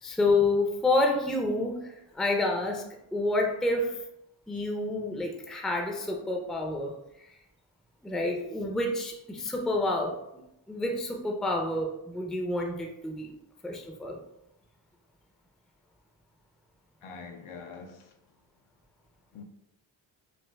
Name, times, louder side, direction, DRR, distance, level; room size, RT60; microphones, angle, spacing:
voice 1, 0.0-2.8 3.1-4.0 4.5-6.9 8.0-13.3 13.6-14.2, left 2 dB, ahead, 0.5 m, -29 dB
voice 2, 17.0-18.2 19.3-19.4, left 5 dB, 80° left, 0.7 m, -44 dB
5.2 x 2.0 x 2.2 m
cardioid pair, 50°, 49 cm